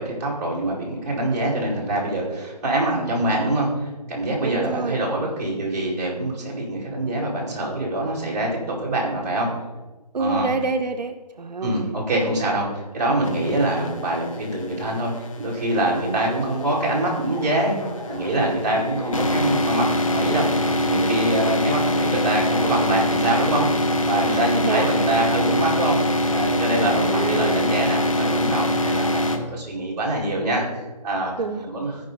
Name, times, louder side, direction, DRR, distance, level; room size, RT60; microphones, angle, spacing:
voice 1, 0.0-9.5 10.2-10.5 11.6-31.3 31.7-31.9, right 1 dB, 25° right, -6 dB, 2.5 m, -25 dB
voice 2, 4.4-5.0 10.1-12.0 24.3-24.9 26.8-27.8 31.4-31.7, right 4 dB, 80° right, 6 dB, 0.8 m, -27 dB
sound 1, 13.2-29.4, left 1 dB, 50° left, 1.1 m, -24 dB
Dog, 16.3-28.5, left 1 dB, 70° left, 2.3 m, -38 dB
14.5 x 5.3 x 3.9 m, 1.2 s
hypercardioid pair, 175°, 21 cm